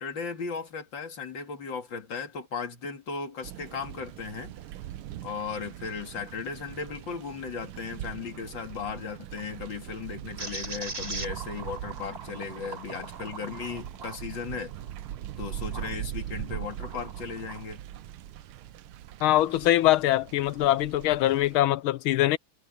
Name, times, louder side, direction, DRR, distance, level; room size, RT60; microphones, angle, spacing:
voice 1, 0.0-4.5 5.2-14.7 15.4-17.8, left 5 dB, 65° left, 2.8 m, -36 dB
sound 1, 3.4-21.6, right 12 dB, 85° right, 1.6 m, -41 dB
sound 2, 10.4-15.9 16.4-17.7, right 3 dB, 30° right, 4.3 m, -41 dB
voice 2, 19.2-22.4, left 14 dB, 85° left, 1.6 m, -23 dB
omnidirectional pair, 2.2 m